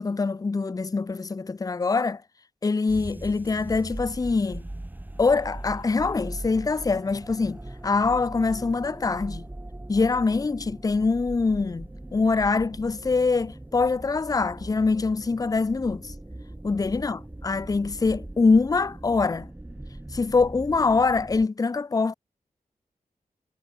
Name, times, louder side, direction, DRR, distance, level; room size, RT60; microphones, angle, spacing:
voice 1, 0.0-2.2 2.6-4.6 5.2-9.4 9.9-16.1 16.6-19.5 20.1-22.1, left 4 dB, 25° left, 0.6 m, -24 dB
sound 1, 2.9-21.5, right 1 dB, 15° right, 3.2 m, -40 dB
wide cardioid pair, 130°, 14 cm